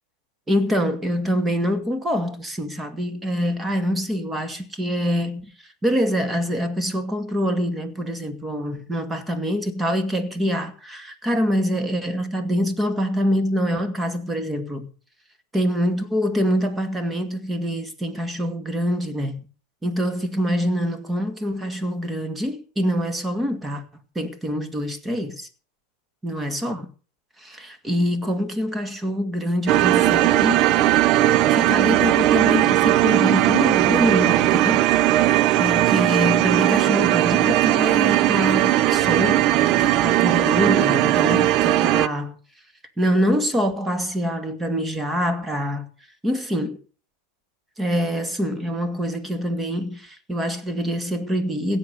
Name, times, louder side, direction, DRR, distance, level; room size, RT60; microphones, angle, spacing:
voice 1, 0.5-5.5 5.8-14.9 15.5-19.4 19.8-23.8 24.2-25.5 26.2-26.9 27.4-30.6 31.5-34.8 35.6-42.4 43.0-45.8 46.2-46.8 47.8-51.8, equal, 10° right, 2.2 m, -25 dB
sound 1, 29.7-42.1, right 14 dB, 45° right, 0.6 m, -18 dB
16.5 x 8.1 x 6.8 m
hypercardioid pair, 95°, 0 cm